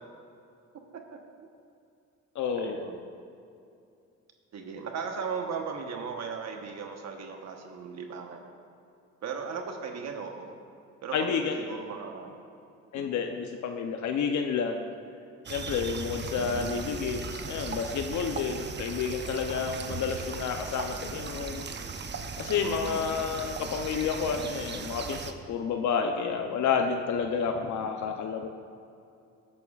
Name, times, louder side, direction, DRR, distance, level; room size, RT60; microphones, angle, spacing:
voice 1, 0.9-1.5 2.5-3.0 4.5-8.5 9.2-10.6 11.0-12.3 12.9-13.2 16.4-16.7 22.6-23.0, right 5 dB, 60° right, 3 dB, 1.1 m, -37 dB
voice 2, 2.4-2.8 11.1-11.8 12.9-14.9 15.5-21.6 22.4-28.5, left 6 dB, 70° left, 4 dB, 0.7 m, -30 dB
sound 1, 15.5-25.3, right 5 dB, 35° right, 0.7 m, -37 dB
17.0 x 8.7 x 2.4 m, 2.6 s
cardioid pair, 90°, 30 cm